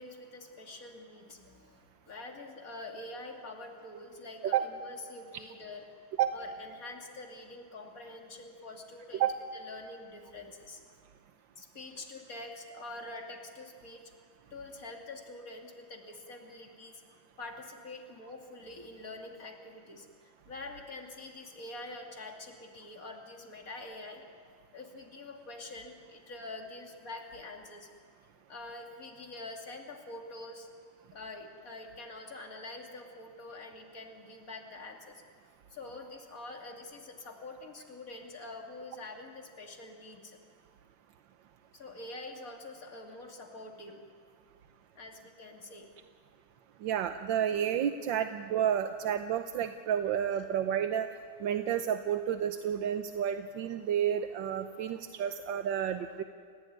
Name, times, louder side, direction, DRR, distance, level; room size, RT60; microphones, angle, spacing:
voice 1, 0.0-5.8 6.3-9.3 9.5-10.8 11.6-14.1 14.5-17.0 17.4-24.2 24.7-27.9 28.5-30.7 31.1-35.2 35.7-40.4 41.7-44.0 45.0-45.9, left 2 dB, 50° left, 2 dB, 3.0 m, -46 dB
voice 2, 46.8-51.1 51.4-56.2, right 9 dB, 85° right, 8 dB, 1.5 m, -30 dB
30.0 x 16.5 x 9.4 m, 2.1 s
omnidirectional pair, 2.0 m